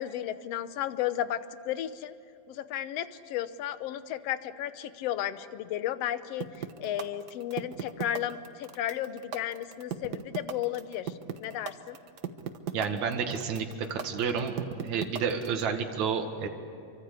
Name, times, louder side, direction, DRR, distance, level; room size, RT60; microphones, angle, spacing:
voice 1, 0.0-2.1 2.5-11.1 11.4-12.0, left 11 dB, 65° left, 12 dB, 1.7 m, -34 dB
sound 1, 6.4-15.6, right 8 dB, 80° right, 0.9 m, -35 dB
voice 2, 12.7-14.6 14.8-16.5, right 6 dB, 65° right, 3 dB, 3.1 m, -30 dB
28.5 x 24.5 x 8.3 m, 2.4 s
omnidirectional pair, 3.6 m